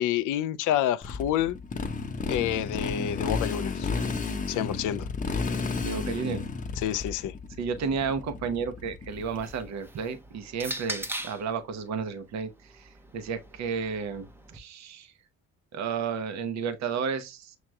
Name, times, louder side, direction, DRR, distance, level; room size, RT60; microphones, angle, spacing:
voice 1, 0.0-1.6 2.3-3.9 4.5-5.1 6.8-7.3, left 11 dB, 80° left, 0.4 m, -28 dB
Motorcycle, 1.0-9.6, left 4 dB, 25° left, 0.7 m, -32 dB
voice 2, 5.8-6.4 7.6-15.1 15.7-17.6, right 6 dB, 65° right, 0.8 m, -32 dB
sound 1, 9.1-11.5 12.5-14.6, right 1 dB, 5° right, 0.6 m, -40 dB
6.2 x 2.9 x 2.2 m
cardioid pair, 90°, 30 cm